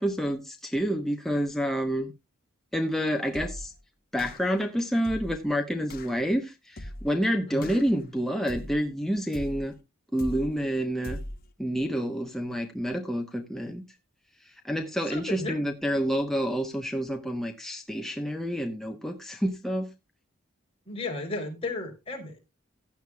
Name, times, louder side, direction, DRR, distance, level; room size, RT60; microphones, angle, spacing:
voice 1, 0.0-2.1 2.7-3.7 4.1-9.7 10.1-11.2 11.6-13.8 14.4-19.9, equal, ahead, 0.9 m, -28 dB
sound 1, 3.3-3.8 4.2-4.6 5.0-5.5 5.9-6.2 6.8-7.2 7.6-8.0 8.5-8.9 9.3-9.8 10.2-10.6 11.0-11.5, left 1 dB, 45° left, 1.1 m, -40 dB
voice 2, 15.1-15.6 20.9-22.4, left 2 dB, 25° left, 3.5 m, -34 dB
15.5 x 10.0 x 2.3 m
head